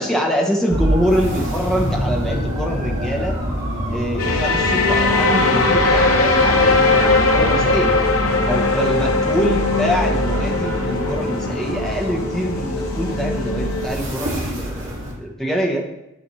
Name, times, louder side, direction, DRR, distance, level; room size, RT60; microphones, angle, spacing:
voice 1, 0.0-3.3 3.9-8.0 8.5-15.8, equal, ahead, -1 dB, 0.9 m, -24 dB
sound 1, 0.7-15.1, equal, 60° right, 1.9 m, -26 dB
sound 2, 1.5-2.7 4.0-5.5 6.0-8.5, equal, 25° left, 1.5 m, -32 dB
sound 3, 4.2-13.9, left 3 dB, 80° left, 0.9 m, -19 dB
11.0 x 4.1 x 3.1 m, 0.91 s
head